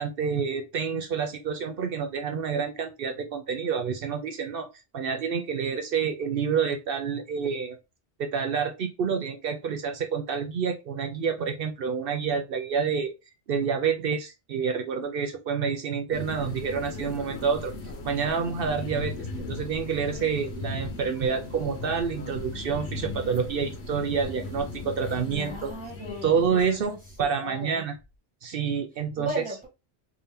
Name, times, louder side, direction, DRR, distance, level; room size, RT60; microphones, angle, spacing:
voice 1, 0.0-4.7 4.9-7.8 8.2-13.1 13.5-17.7 18.0-25.7 26.2-26.9 27.2-27.9 28.4-29.3, right 6 dB, 60° right, 0.7 m, -28 dB
sound 1, 16.1-27.4, left 2 dB, 70° left, 1.1 m, -37 dB
voice 2, 25.0-27.8 29.2-29.7, equal, 5° right, 1.5 m, -37 dB
3.6 x 2.8 x 3.4 m
omnidirectional pair, 1.1 m